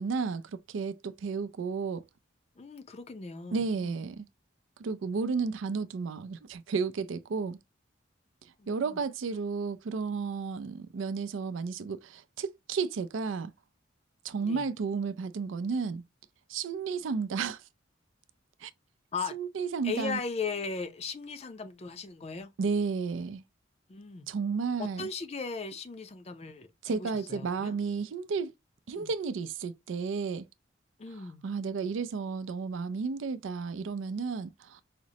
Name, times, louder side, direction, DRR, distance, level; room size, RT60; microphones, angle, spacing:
voice 1, 0.0-2.0 3.5-4.3 4.8-7.6 8.7-13.5 14.2-16.0 16.5-17.6 18.6-18.7 19.3-20.2 22.6-23.4 24.3-25.1 26.8-28.5 28.9-30.5 31.4-34.8, right 5 dB, 85° right, 0.4 m, -32 dB
voice 2, 2.6-4.0 8.6-9.0 14.4-14.7 19.1-19.3 19.8-22.5 23.9-24.3 24.8-27.7 28.9-29.1 31.0-31.4, left 5 dB, 35° left, 0.4 m, -38 dB
5.0 x 2.0 x 2.7 m
head